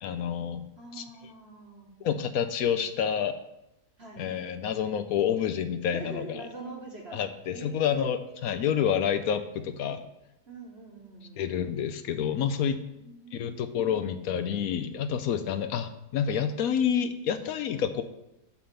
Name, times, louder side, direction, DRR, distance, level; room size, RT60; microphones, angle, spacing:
voice 1, 0.0-0.6 0.9-1.0 2.0-3.4 4.2-6.5 7.1-10.0 11.4-12.8 13.3-18.0, left 8 dB, 70° left, 9 dB, 1.0 m, -28 dB
voice 2, 0.8-1.9 4.0-4.2 5.9-7.2 7.5-8.3 10.5-11.4 12.9-14.1, right 3 dB, 40° right, -2 dB, 1.4 m, -44 dB
6.7 x 5.6 x 6.7 m, 0.89 s
omnidirectional pair, 1.8 m